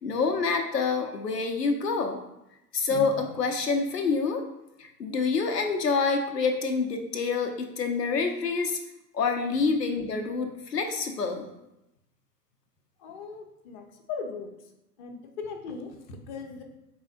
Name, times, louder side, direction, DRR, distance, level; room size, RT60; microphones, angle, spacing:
voice 1, 0.0-2.2 2.7-4.4 4.8-8.8 9.1-11.5, left 4 dB, 80° left, 4 dB, 0.9 m, -27 dB
voice 2, 13.0-14.5 15.0-16.6, left 5 dB, 30° left, 5 dB, 0.6 m, -38 dB
5.5 x 3.7 x 2.5 m, 0.89 s
figure-of-eight pair, 105°, 48 cm